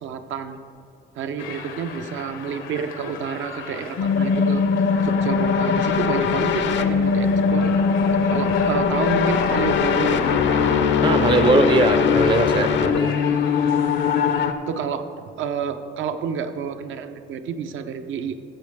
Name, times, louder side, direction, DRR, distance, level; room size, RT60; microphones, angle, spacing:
voice 1, 0.0-0.6 1.2-4.6 5.0-7.7 8.3-10.8 11.4-11.7 13.3-13.5 14.7-18.3, right 6 dB, 75° right, 8 dB, 0.7 m, -29 dB
sound 1, 1.4-14.5, left 5 dB, 85° left, 1.0 m, -37 dB
sound 2, 4.0-14.5, left 6 dB, 70° left, 0.6 m, -20 dB
voice 2, 11.0-13.2, right 3 dB, 25° right, 10 dB, 0.4 m, -21 dB
14.0 x 7.6 x 3.5 m, 2.4 s
cardioid pair, 90°, 20 cm